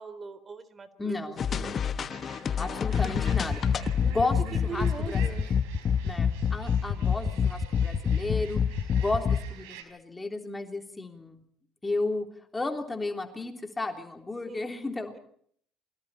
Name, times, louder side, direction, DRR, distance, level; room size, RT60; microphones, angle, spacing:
voice 1, 0.0-1.8 4.0-4.3 4.5-5.5 14.5-14.8 15.1-15.2, right 5 dB, 35° right, 14 dB, 3.7 m, -41 dB
voice 2, 1.0-1.4 2.6-5.2 6.0-8.6 8.9-11.4 11.8-12.3 12.5-15.1, left 2 dB, 15° left, 4 dB, 3.5 m, -33 dB
sound 1, 1.4-9.4, left 7 dB, 45° left, 1.3 m, -27 dB
sound 2, 2.1-9.8, right 9 dB, 80° right, 4.8 m, -49 dB
28.5 x 23.0 x 4.4 m, 0.63 s
hypercardioid pair, 65°, 0 cm